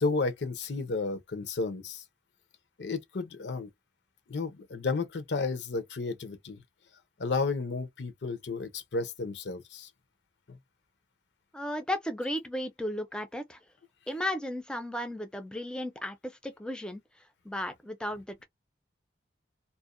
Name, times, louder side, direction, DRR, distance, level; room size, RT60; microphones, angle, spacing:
voice 1, 0.0-2.0 2.8-3.7 4.3-6.6 7.2-9.9, left 3 dB, 85° left, 0.7 m, -32 dB
voice 2, 11.5-13.6 14.1-17.0 17.4-18.4, left 1 dB, 5° left, 0.4 m, -35 dB
2.5 x 2.1 x 2.4 m
head